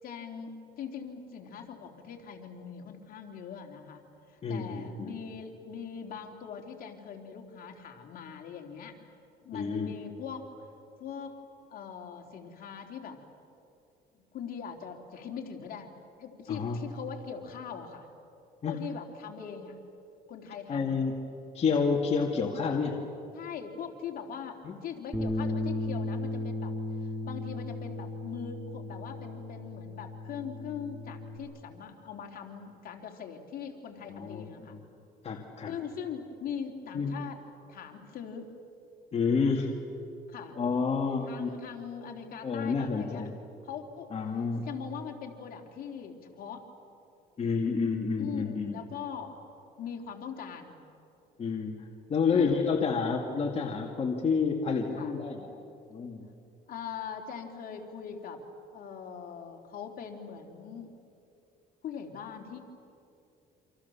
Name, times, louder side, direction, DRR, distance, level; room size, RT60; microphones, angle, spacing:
voice 1, 0.0-9.0 9.4-10.5 11.0-11.3 11.7-13.2 14.1-18.1 18.6-19.8 20.3-20.9 23.3-26.7 27.0-34.8 35.7-37.4 37.7-38.5 40.3-40.5 41.2-43.2 43.6-44.2 44.6-46.7 48.2-49.4 49.8-50.8 52.3-52.6 54.9-55.1 56.7-58.4 58.7-60.9 61.8-62.6, left 7 dB, 60° left, 2 dB, 3.4 m, -41 dB
voice 2, 4.4-5.1 9.5-9.9 16.5-16.8 18.6-18.8 20.7-21.2 21.5-23.0 24.6-24.8 34.1-34.4 34.7-34.8 35.2-35.7 36.9-37.2 39.1-39.7 40.6-41.5 42.4-43.3 44.1-44.7 47.4-48.8 51.4-51.7 52.1-55.5 55.9-56.3, left 5 dB, 40° left, 0 dB, 2.3 m, -29 dB
Bass guitar, 25.1-31.4, left 2 dB, ahead, 5.9 m, -35 dB
28.5 x 26.5 x 7.2 m, 2.7 s
cardioid pair, 110°, 17 cm